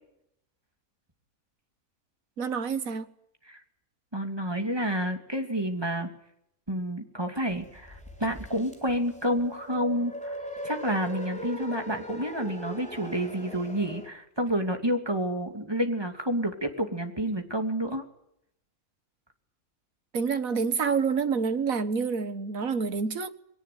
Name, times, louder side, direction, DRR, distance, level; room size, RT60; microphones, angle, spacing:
voice 1, 2.4-3.1 20.1-23.3, right 5 dB, 70° right, 1.8 m, -28 dB
voice 2, 4.1-6.1 6.7-10.4 10.6-18.0, equal, 15° right, 2.7 m, -29 dB
sound 1, 7.5-14.1, equal, 5° left, 3.9 m, -40 dB
22.5 x 18.0 x 9.5 m
omnidirectional pair, 1.5 m